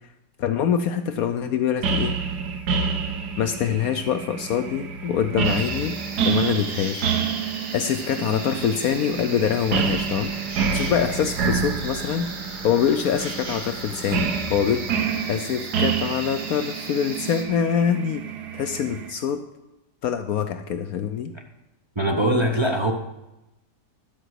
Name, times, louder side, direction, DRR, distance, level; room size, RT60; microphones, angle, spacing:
voice 1, 0.4-2.1 3.4-6.0 6.2-7.0 7.7-12.3 12.6-14.9 15.3-18.2 18.5-19.4 20.0-21.3, left 8 dB, 70° left, 8 dB, 1.0 m, -24 dB
sound 1, 1.8-19.1, right 6 dB, 70° right, 1.6 m, -28 dB
sound 2, 5.4-17.4, right 3 dB, 50° right, 1.8 m, -37 dB
voice 2, 22.0-22.9, right 1 dB, 25° right, 1 dB, 0.6 m, -21 dB
12.0 x 5.0 x 8.0 m, 0.95 s
omnidirectional pair, 1.8 m